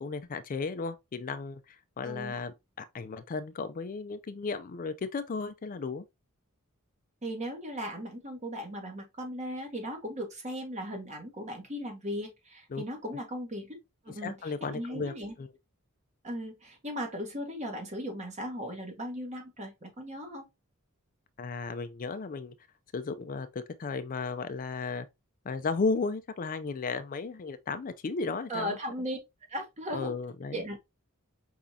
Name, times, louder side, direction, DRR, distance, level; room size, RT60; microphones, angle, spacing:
voice 1, 0.0-6.0 12.7-13.2 14.2-15.5 21.4-22.5 22.9-25.1 25.5-28.8 29.9-30.8, left 4 dB, 40° left, 0.4 m, -35 dB
voice 2, 2.0-2.4 7.2-13.8 14.0-14.3 14.6-15.3 16.2-20.4 28.5-29.2 29.5-30.1 30.5-30.8, equal, 35° right, 1.5 m, -37 dB
5.0 x 3.6 x 2.7 m
head